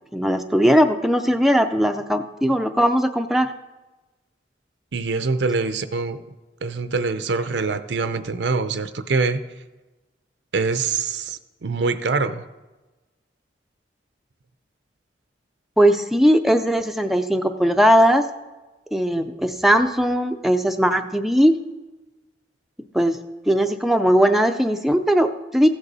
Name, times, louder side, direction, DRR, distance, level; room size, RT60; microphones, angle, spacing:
voice 1, 0.1-3.5 15.8-18.3 18.9-21.6 22.9-23.2 23.5-25.7, equal, ahead, 6 dB, 0.4 m, -19 dB
voice 2, 4.9-6.2 6.6-9.4 10.5-12.4, right 4 dB, 80° right, 11 dB, 0.6 m, -24 dB
14.5 x 8.1 x 4.1 m, 1.1 s
head